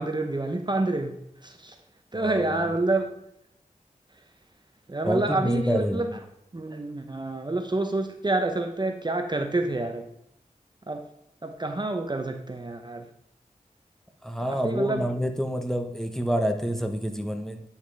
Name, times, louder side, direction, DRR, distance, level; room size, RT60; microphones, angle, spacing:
voice 1, 0.0-1.8 2.1-3.1 4.9-6.2 6.5-10.1 10.9-11.0 11.4-13.1 14.5-15.0, right 2 dB, 30° right, 5 dB, 0.8 m, -28 dB
voice 2, 2.1-2.7 5.1-6.1 14.2-17.6, equal, 5° left, 6 dB, 1.0 m, -28 dB
9.1 x 5.7 x 3.3 m, 0.78 s
cardioid pair, 45°, 15 cm